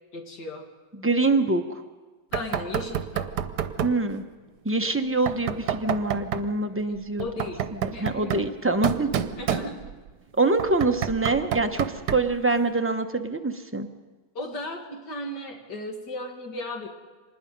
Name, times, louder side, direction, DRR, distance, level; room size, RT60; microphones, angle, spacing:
voice 1, 0.1-0.7 2.3-3.4 7.2-8.5 9.4-10.0 14.3-16.9, left 2 dB, 70° left, 2 dB, 2.6 m, -36 dB
voice 2, 1.0-1.6 3.8-4.2 4.6-7.2 7.8-9.1 10.4-11.9 12.1-13.9, right 3 dB, 15° right, 5 dB, 0.5 m, -24 dB
Knock, 2.3-4.0 5.3-6.5 7.2-10.1 10.6-12.4, right 9 dB, 70° right, 1.4 m, -30 dB
25.5 x 20.0 x 5.3 m, 1.3 s
omnidirectional pair, 1.9 m